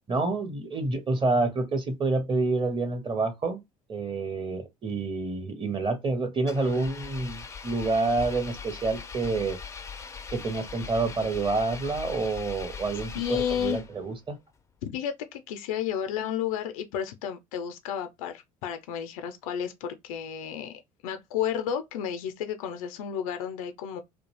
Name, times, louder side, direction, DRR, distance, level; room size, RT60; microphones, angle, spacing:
voice 1, 0.1-3.6 3.9-9.6 10.3-14.4, right 3 dB, 25° right, 0.7 m, -28 dB
Engine, 6.4-14.2, left 5 dB, 15° left, 0.4 m, -40 dB
voice 2, 13.1-13.8 14.8-24.0, left 9 dB, 75° left, 0.4 m, -32 dB
2.3 x 2.1 x 3.1 m
hypercardioid pair, 65°, 18 cm